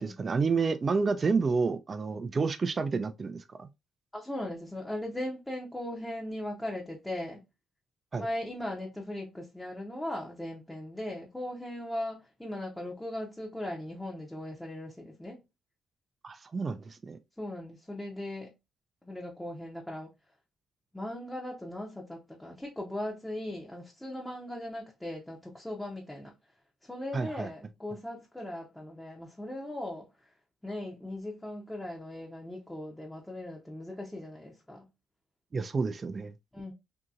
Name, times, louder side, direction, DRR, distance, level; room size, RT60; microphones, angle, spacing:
voice 1, 0.0-3.7 8.1-8.3 16.2-17.2 27.1-27.5 35.5-36.3, right 4 dB, 35° right, 0.4 m, -29 dB
voice 2, 4.1-7.4 8.1-15.4 17.4-18.5 19.0-20.1 20.9-26.3 26.8-30.3 30.6-34.9 36.5-36.7, left 1 dB, 5° left, 0.7 m, -38 dB
2.8 x 2.7 x 2.4 m
cardioid pair, 90°, 0 cm